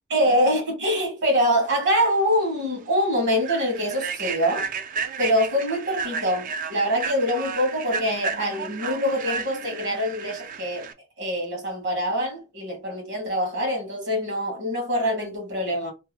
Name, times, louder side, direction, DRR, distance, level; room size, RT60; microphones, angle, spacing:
voice 1, 0.1-4.7 5.2-10.8 11.2-15.9, equal, 60° right, 1.2 m, -24 dB
Human voice / Train, 2.1-2.2 2.6-2.8 3.3-10.9, right 5 dB, 40° right, 0.3 m, -33 dB
2.8 x 2.2 x 3.0 m
head